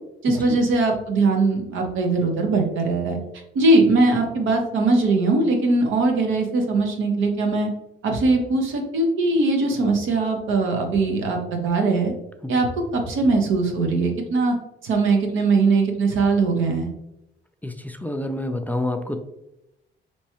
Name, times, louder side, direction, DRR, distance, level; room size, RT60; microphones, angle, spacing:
voice 1, 0.2-3.2 3.5-7.7 8.0-12.1 12.5-12.7 12.9-14.5 14.8-16.9, right 3 dB, 80° right, 2 dB, 0.9 m, -20 dB
voice 2, 17.6-19.2, left 1 dB, 10° left, 5 dB, 0.3 m, -28 dB
4.4 x 3.1 x 2.9 m, 0.88 s
cardioid pair, 90°, 20 cm